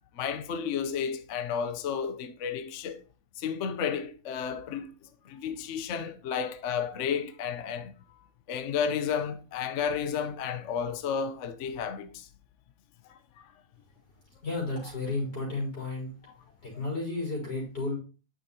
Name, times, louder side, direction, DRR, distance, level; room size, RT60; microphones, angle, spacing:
voice 1, 0.1-3.0 3.4-4.9 5.2-7.9 8.5-12.3 13.4-13.5, left 7 dB, 60° left, 0.9 m, -32 dB
voice 2, 14.4-16.1 16.6-18.0, left 2 dB, 80° left, 4.5 m, -32 dB
9.1 x 6.1 x 2.7 m
omnidirectional pair, 1.8 m